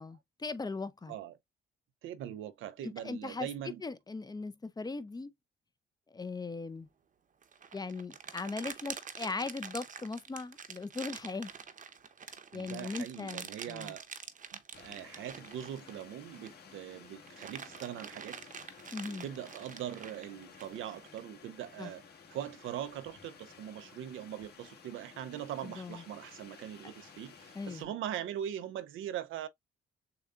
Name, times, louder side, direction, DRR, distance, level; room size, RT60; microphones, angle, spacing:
voice 1, 0.0-1.1 2.8-5.3 6.1-6.9 7.7-11.5 12.5-13.9 18.9-19.3 21.8-21.9 25.6-26.0 26.8-26.9 27.5-27.9, left 3 dB, 20° left, 0.6 m, -39 dB
voice 2, 2.0-3.8 12.5-14.0 14.5-18.4 19.1-22.0 22.3-29.5, right 11 dB, 80° right, 0.6 m, -41 dB
sound 1, 7.4-16.7 17.1-21.2, right 6 dB, 40° right, 0.8 m, -46 dB
sound 2, 14.7-27.9, left 6 dB, 55° left, 1.9 m, -55 dB
6.8 x 2.3 x 2.4 m
cardioid pair, 90°, 20 cm